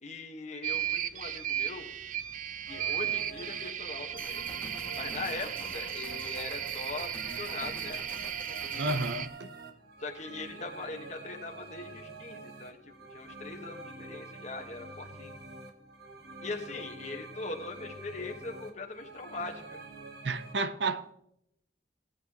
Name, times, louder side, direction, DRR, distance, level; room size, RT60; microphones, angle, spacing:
voice 1, 0.0-1.9 2.7-4.5 4.9-8.0 8.6-9.0 10.0-15.3 16.4-19.8, left 3 dB, 45° left, 1.4 m, -41 dB
sound 1, 0.6-9.3, right 10 dB, 50° right, 0.5 m, -35 dB
sound 2, 2.7-20.5, right 3 dB, 65° right, 1.4 m, -47 dB
sound 3, 4.2-9.2, left 2 dB, 10° left, 1.8 m, -48 dB
voice 2, 8.8-9.3 20.2-21.1, right 3 dB, 80° right, 0.8 m, -31 dB
17.0 x 8.5 x 3.0 m
head